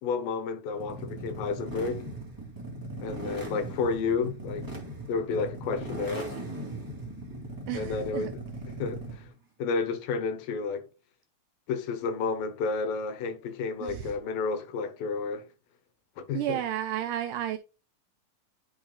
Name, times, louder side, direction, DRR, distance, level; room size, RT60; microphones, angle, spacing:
voice 1, 0.0-2.0 3.0-4.7 5.1-6.4 7.7-8.3 8.8-9.3 9.6-10.8 11.7-15.4 16.2-16.6, left 4 dB, 80° left, 2.6 m, -31 dB
sound 1, 0.7-9.3, right 2 dB, 10° right, 1.1 m, -39 dB
voice 2, 7.7-8.3 13.8-14.2 16.3-17.6, right 12 dB, 80° right, 1.9 m, -32 dB
10.5 x 4.7 x 2.3 m
omnidirectional pair, 4.1 m